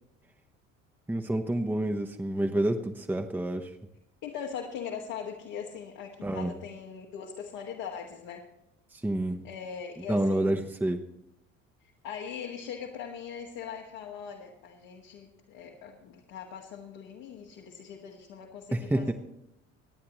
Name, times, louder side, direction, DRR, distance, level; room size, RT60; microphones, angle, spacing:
voice 1, 1.1-3.7 6.2-6.5 9.0-9.4 10.1-11.0 18.7-19.1, right 1 dB, 5° right, 6 dB, 1.0 m, -28 dB
voice 2, 4.2-8.4 9.4-10.7 11.8-19.1, left 7 dB, 55° left, 0 dB, 1.7 m, -40 dB
25.5 x 9.8 x 3.1 m, 0.83 s
figure-of-eight pair, 60°, 40 cm